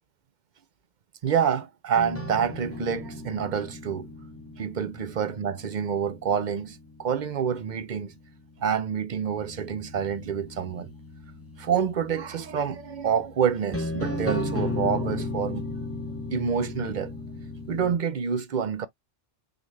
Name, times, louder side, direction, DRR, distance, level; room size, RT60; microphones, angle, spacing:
voice 1, 1.2-4.1 4.6-8.1 8.6-10.9 11.6-15.7 16.3-17.1 17.7-18.9, right 7 dB, 45° right, 0.7 m, -27 dB
sound 1, 2.0-18.0, left 2 dB, 15° left, 0.9 m, -36 dB
6.0 x 2.5 x 3.2 m
omnidirectional pair, 1.3 m